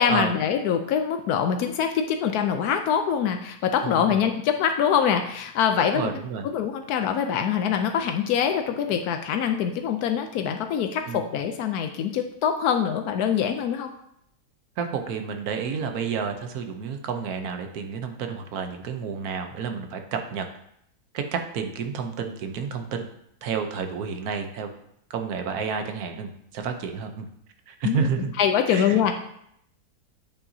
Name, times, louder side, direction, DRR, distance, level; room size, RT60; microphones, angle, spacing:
voice 1, 0.0-6.1 6.4-13.9 27.8-28.1 28.4-29.2, left 8 dB, 85° left, 6 dB, 1.1 m, -24 dB
voice 2, 3.8-4.2 5.8-6.5 11.1-11.2 14.8-20.5 21.1-23.1 23.4-24.7 25.1-27.3 27.7-28.3 28.7-28.9, right 6 dB, 80° right, 6 dB, 1.2 m, -30 dB
8.7 x 5.7 x 2.7 m, 0.73 s
omnidirectional pair, 1.6 m